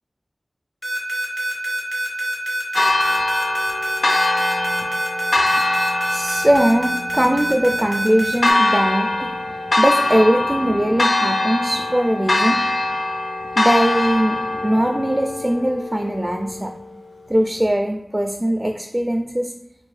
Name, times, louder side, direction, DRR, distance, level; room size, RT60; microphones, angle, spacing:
sound 1, 0.8-8.5, right 1 dB, 50° left, 1.1 m, -25 dB
Church bell, 2.8-16.8, left 2 dB, 75° left, 0.4 m, -22 dB
voice 1, 6.1-9.3 9.8-12.6 13.6-16.7 17.3-19.5, equal, 15° right, 4 dB, 0.3 m, -20 dB
4.4 x 2.5 x 3.2 m, 0.90 s
wide cardioid pair, 65°, 0 cm